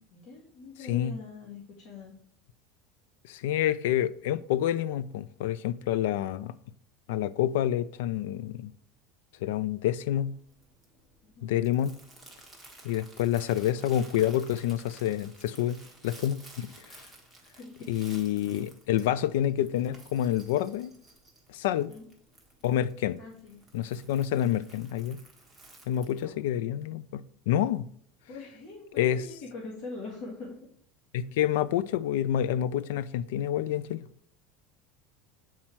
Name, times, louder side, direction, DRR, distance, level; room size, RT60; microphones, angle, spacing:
voice 1, 0.0-2.1 11.2-11.6 17.6-17.9 21.9-22.0 23.2-23.6 26.1-26.3 28.3-30.6 31.2-31.4, left 3 dB, 40° left, 1.6 m, -43 dB
voice 2, 3.3-6.5 7.1-8.7 9.4-10.4 11.4-12.0 12.8-16.7 17.9-20.9 21.5-21.9 22.6-23.2 23.7-25.2 25.9-27.9 29.0-29.2 31.1-34.1, left 11 dB, 85° left, 0.3 m, -28 dB
Crumpling crinkling, 9.9-26.3, right 2 dB, 5° left, 1.2 m, -54 dB
7.5 x 4.3 x 4.4 m
cardioid pair, 180°, 0 cm